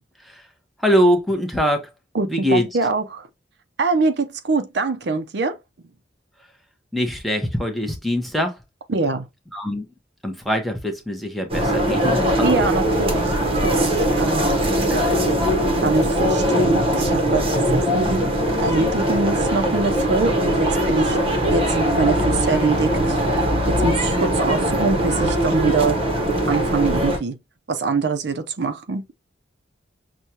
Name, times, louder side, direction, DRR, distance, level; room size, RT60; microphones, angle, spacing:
voice 1, 0.8-1.9 2.3-2.6 6.9-8.6 9.5-9.9 10.2-12.7 14.6-15.4, equal, ahead, 0.8 m, -23 dB
voice 2, 2.1-3.3 3.8-5.6 8.9-9.3 12.4-14.5 15.8-18.2 18.6-23.2 23.7-26.0 26.5-27.4 27.7-29.0, right 3 dB, 60° right, 0.6 m, -24 dB
sound 1, 11.5-27.2, right 1 dB, 30° right, 0.9 m, -21 dB
6.2 x 2.3 x 2.8 m
head